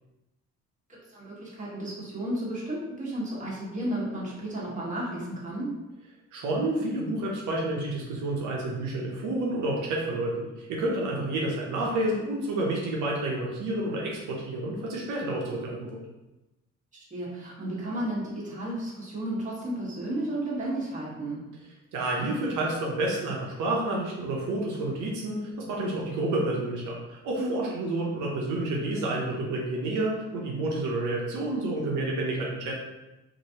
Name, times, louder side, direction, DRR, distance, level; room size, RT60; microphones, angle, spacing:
voice 1, 0.9-5.7 17.1-21.5 27.4-27.5, right 1 dB, 25° right, -6 dB, 1.3 m, -33 dB
voice 2, 6.3-16.0 21.9-32.7, right 2 dB, 80° right, -3 dB, 0.7 m, -29 dB
3.0 x 2.6 x 2.7 m, 1.0 s
cardioid pair, 90°, 30 cm